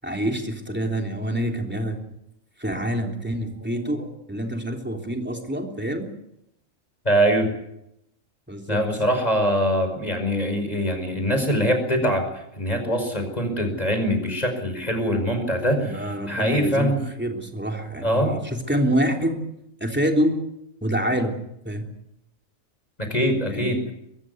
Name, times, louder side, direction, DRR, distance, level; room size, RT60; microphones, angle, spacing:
voice 1, 0.0-2.0 2.6-6.1 8.5-8.8 15.8-19.4 19.8-20.4 20.8-21.4 21.6-21.9 23.5-23.8, equal, 10° right, 2 dB, 3.4 m, -26 dB
voice 2, 7.1-7.5 8.7-16.0 16.3-17.0 18.0-18.3 23.0-23.8, equal, 30° left, 6 dB, 5.3 m, -23 dB
24.0 x 14.5 x 9.4 m, 0.82 s
omnidirectional pair, 1.4 m